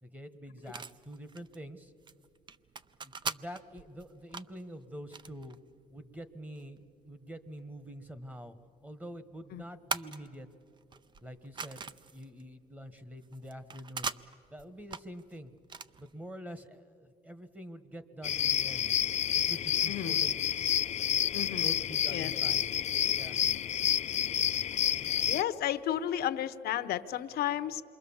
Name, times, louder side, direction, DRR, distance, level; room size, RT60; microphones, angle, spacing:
voice 1, 0.0-1.9 3.0-5.6 5.9-8.5 8.8-10.5 11.2-14.1 14.5-15.5 16.0-18.9 19.3-20.4 21.6-22.7 23.1-23.4, equal, 10° right, 12 dB, 1.2 m, -46 dB
sound 1, 0.6-16.3, right 5 dB, 25° right, 0.5 m, -43 dB
sound 2, 18.2-25.4, left 10 dB, 45° left, 0.5 m, -29 dB
voice 2, 19.9-20.2 21.3-21.7 22.1-22.3 25.3-27.8, left 11 dB, 70° left, 12 dB, 1.0 m, -33 dB
27.5 x 23.0 x 7.2 m, 2.4 s
cardioid pair, 110°, 17 cm